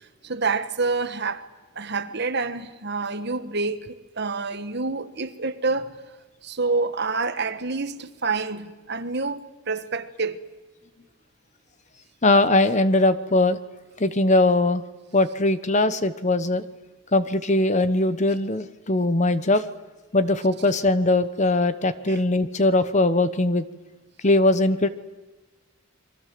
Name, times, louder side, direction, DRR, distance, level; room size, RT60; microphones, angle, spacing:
voice 1, 0.0-1.4 1.7-3.9 4.2-5.9 6.4-10.4 22.1-22.2, right 4 dB, 50° right, 1.4 m, -27 dB
voice 2, 12.2-13.6 14.0-14.8 15.1-16.6 17.1-19.7 20.1-23.6 24.2-24.9, left 2 dB, 30° left, 1.0 m, -20 dB
29.5 x 23.5 x 7.7 m
head